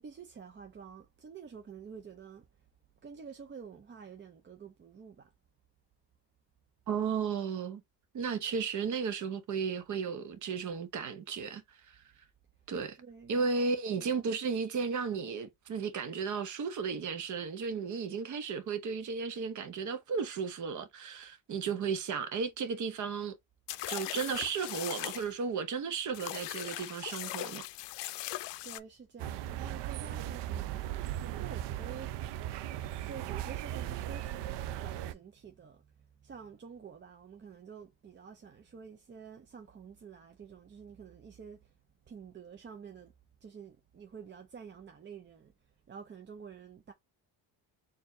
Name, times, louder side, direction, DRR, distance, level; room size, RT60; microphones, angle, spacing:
voice 1, 0.0-2.5 3.0-5.3 13.0-13.7 28.6-30.9 31.4-32.2 32.7-41.7 42.1-43.1 43.4-45.5 45.9-46.9, right 6 dB, 25° right, 0.5 m, -49 dB
voice 2, 6.9-7.8 8.1-12.0 12.7-13.0 13.3-23.4 23.9-27.7, right 5 dB, 45° right, 0.9 m, -34 dB
sound 1, 23.7-25.3 26.1-28.8, left 17 dB, 80° left, 0.5 m, -39 dB
sound 2, 29.2-35.1, right 12 dB, 90° right, 0.5 m, -37 dB
4.4 x 2.7 x 2.6 m
cardioid pair, 150°, 41 cm